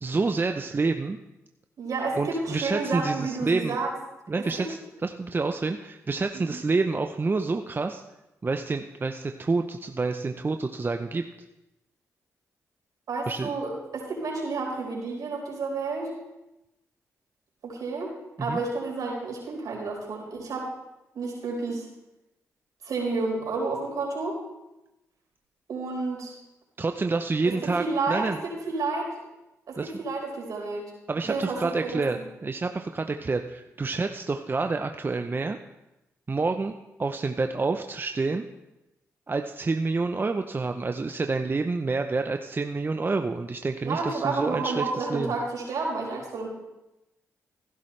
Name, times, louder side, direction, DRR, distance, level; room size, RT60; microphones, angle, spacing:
voice 1, 0.0-1.2 2.2-3.8 4.3-8.0 8.4-11.2 13.3-13.5 18.4-18.6 26.8-28.4 29.8-29.9 31.1-35.6 36.3-36.7 37.0-38.5 39.3-45.3, right 3 dB, 35° right, 6 dB, 0.7 m, -28 dB
voice 2, 1.8-3.9 4.4-4.5 6.3-6.6 13.1-16.1 17.6-18.1 18.4-20.7 21.1-21.8 22.8-24.3 25.7-26.3 27.4-28.2 28.7-29.1 29.7-30.8 31.3-32.2 43.8-46.5, right 3 dB, 70° right, -2 dB, 4.8 m, -30 dB
15.0 x 12.0 x 3.3 m, 0.95 s
supercardioid pair, 50°, 6 cm